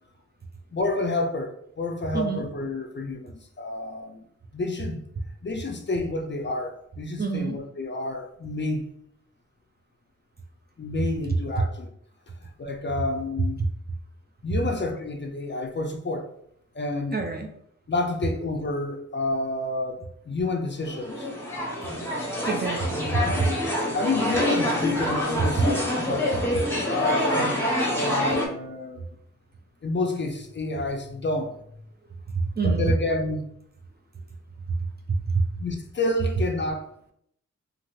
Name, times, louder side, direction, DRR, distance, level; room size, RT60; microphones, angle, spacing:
voice 1, 0.7-4.2 4.5-5.0 5.4-8.8 10.8-11.9 12.6-13.6 14.4-16.3 16.7-17.2 17.9-21.3 23.3-23.6 23.9-26.3 26.9-27.6 27.9-29.0 29.8-31.5 32.6-33.4 35.6-36.9, left 2 dB, 40° left, 0.4 m, -29 dB
voice 2, 2.1-2.5 7.2-7.6 17.1-17.5 22.5-23.5 32.3-32.9 34.7-34.8 35.1-35.4, right 4 dB, 35° right, 0.4 m, -26 dB
sound 1, 20.9-28.5, left 1 dB, 10° left, 0.8 m, -26 dB
2.7 x 2.4 x 3.0 m
wide cardioid pair, 105°, 30 cm